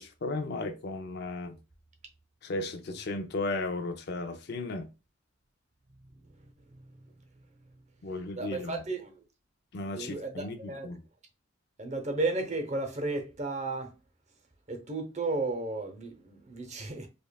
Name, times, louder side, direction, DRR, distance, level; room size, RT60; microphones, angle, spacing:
voice 1, 0.0-1.6 2.4-4.9 8.0-8.8 9.7-11.0, left 2 dB, 55° left, 0.5 m, -35 dB
voice 2, 8.4-9.2 9.9-10.9 11.8-13.9 14.7-17.1, right 2 dB, 35° right, 0.8 m, -33 dB
5.1 x 2.4 x 2.3 m
head